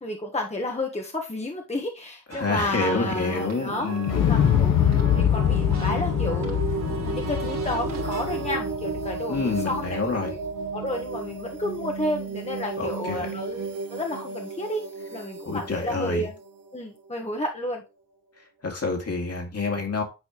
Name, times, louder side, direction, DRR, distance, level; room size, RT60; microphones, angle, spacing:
voice 1, 0.0-3.9 4.2-6.8 7.0-10.4 10.7-14.8 15.1-16.4 16.7-17.8, left 1 dB, 20° left, 1.2 m, -31 dB
voice 2, 2.3-4.2 9.3-10.3 12.8-13.2 15.5-16.3 18.6-20.0, left 3 dB, 50° left, 2.4 m, -28 dB
sound 1, 2.3-8.5, right 4 dB, 55° right, 2.2 m, -40 dB
sound 2, 2.8-17.5, right 5 dB, 80° right, 1.1 m, -34 dB
Explosion, 4.1-10.1 10.4-10.5, left 9 dB, 85° left, 1.0 m, -24 dB
8.9 x 4.4 x 3.0 m
supercardioid pair, 50°, 32 cm